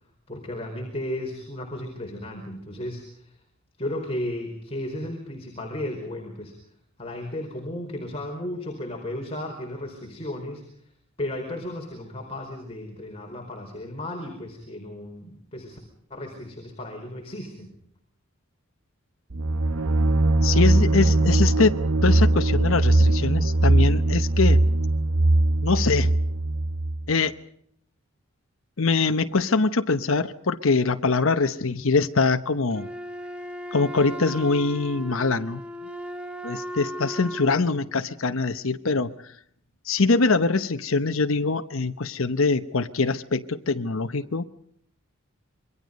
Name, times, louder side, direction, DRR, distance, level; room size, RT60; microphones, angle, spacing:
voice 1, 0.3-3.3 3.8-6.5 7.0-10.6 11.2-15.8 16.1-17.7, left 1 dB, 30° left, 2 dB, 4.7 m, -34 dB
sound 1, 19.3-27.0, right 2 dB, 90° right, 1.1 m, -20 dB
voice 2, 20.4-21.7 22.0-24.6 25.6-26.1 27.1-27.3 28.8-32.9 33.7-35.6 36.4-39.4 39.8-44.4, left 4 dB, 75° left, 8 dB, 1.0 m, -23 dB
Wind instrument woodwind instrument, 32.7-37.6, equal, 5° right, 1.4 m, -36 dB
27.5 x 23.0 x 5.3 m, 0.69 s
head